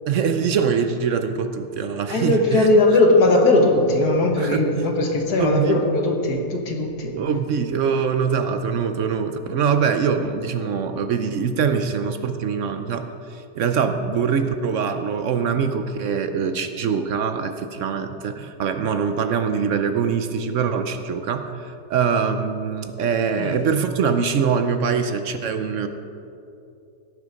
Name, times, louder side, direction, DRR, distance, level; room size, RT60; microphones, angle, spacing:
voice 1, 0.1-2.7 4.4-4.9 5.4-5.8 7.2-25.9, right 6 dB, 65° right, 8 dB, 0.8 m, -23 dB
voice 2, 2.1-7.2 23.4-23.6, left 2 dB, 65° left, 2 dB, 1.9 m, -19 dB
17.5 x 6.7 x 5.2 m, 2.7 s
omnidirectional pair, 1.8 m